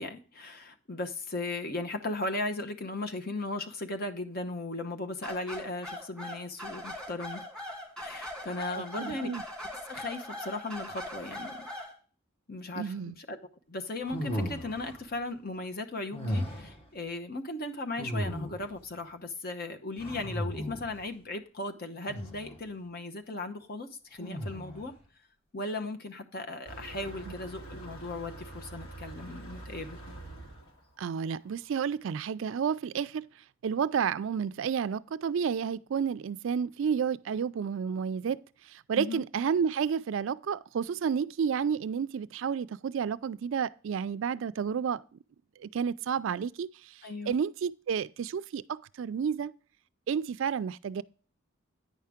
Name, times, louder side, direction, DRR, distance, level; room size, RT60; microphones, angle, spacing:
voice 1, 0.0-7.4 8.0-9.3 9.9-11.6 12.5-13.4 13.7-24.9 25.5-30.0 38.9-39.2 47.0-47.4, left 2 dB, 45° left, 0.9 m, -37 dB
sound 1, 5.2-11.9, left 1 dB, 5° left, 2.2 m, -41 dB
voice 2, 9.0-9.4 12.8-13.2 31.0-33.3 33.6-38.4 38.7-45.0 45.6-46.7 47.3-49.5 50.1-51.0, right 7 dB, 65° right, 0.3 m, -31 dB
sound 2, 14.1-15.0 16.1-16.8 18.0-18.8 20.0-21.0 22.1-22.6 24.2-24.9, equal, 30° left, 1.3 m, -35 dB
Motor vehicle (road), 26.6-31.8, right 2 dB, 80° left, 2.6 m, -45 dB
9.5 x 5.6 x 3.5 m
head